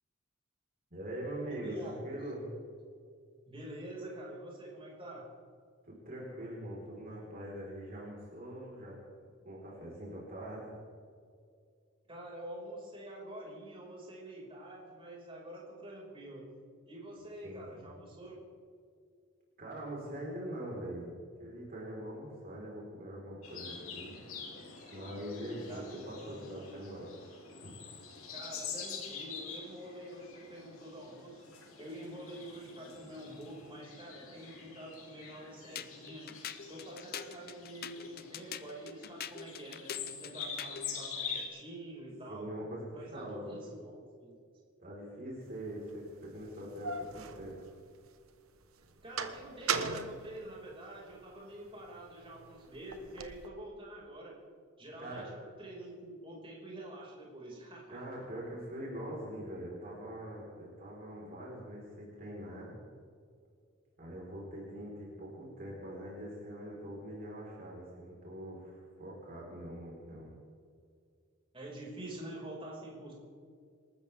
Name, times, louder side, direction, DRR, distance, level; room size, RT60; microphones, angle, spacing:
voice 1, 0.9-2.5 5.8-10.7 17.4-17.9 19.6-21.1 21.4-24.2 24.9-27.1 27.6-27.7 42.3-43.6 44.8-47.6 55.0-55.3 57.9-62.7 64.0-70.3, right 1 dB, 45° right, -4 dB, 4.5 m, -43 dB
voice 2, 1.5-2.2 3.5-5.3 12.1-16.5 16.9-18.4 25.7-26.5 28.3-31.4 31.8-36.2 36.7-42.5 42.9-44.4 49.0-54.4 54.8-58.0 71.5-73.1, right 1 dB, 25° right, -4 dB, 5.5 m, -47 dB
sound 1, 23.4-41.5, left 6 dB, 80° left, 3.9 m, -46 dB
sound 2, 35.7-40.9, left 8 dB, 45° left, 0.8 m, -44 dB
sound 3, 45.6-45.7 46.4-48.2 48.6-51.2 51.7-53.5, right 5 dB, 80° right, 1.2 m, -38 dB
27.0 x 14.0 x 3.6 m, 2.3 s
head